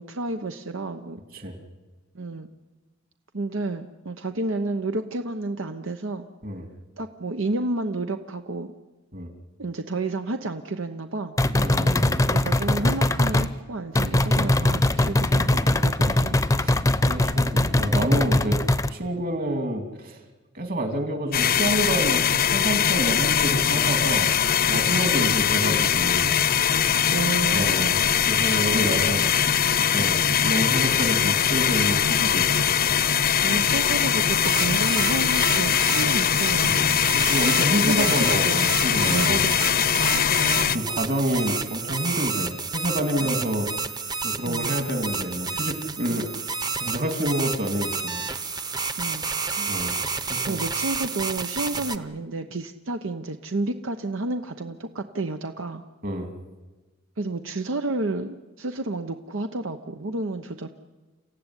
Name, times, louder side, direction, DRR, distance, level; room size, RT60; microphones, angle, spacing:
voice 1, 0.0-1.2 2.1-2.5 3.3-6.3 7.0-8.7 9.6-11.3 12.3-16.4 25.2-25.4 27.1-28.1 33.4-36.9 37.8-38.6 39.1-40.9 43.2-43.3 44.5-44.7 46.1-46.4 49.0-49.3 49.6-49.7 50.5-55.8 57.2-60.7, right 2 dB, 85° right, 7 dB, 1.0 m, -31 dB
sound 1, 11.4-13.5 13.9-18.9, left 1 dB, 15° left, 0.7 m, -21 dB
voice 2, 11.5-12.2 14.7-14.8 16.0-16.8 17.0-18.6 18.9-20.2 20.5-24.3 24.7-26.3 27.5-27.9 28.2-29.2 29.8-32.7 36.6-36.8 37.1-39.5 40.7-43.7 44.2-46.3 46.8-48.2 49.7-50.0 50.3-50.6 56.0-56.3, equal, 50° right, 5 dB, 2.9 m, -28 dB
sound 2, 21.3-40.8, left 8 dB, 50° left, 0.7 m, -21 dB
sound 3, 34.3-52.0, right 4 dB, 20° right, 0.9 m, -30 dB
29.0 x 15.5 x 9.9 m, 1.2 s
head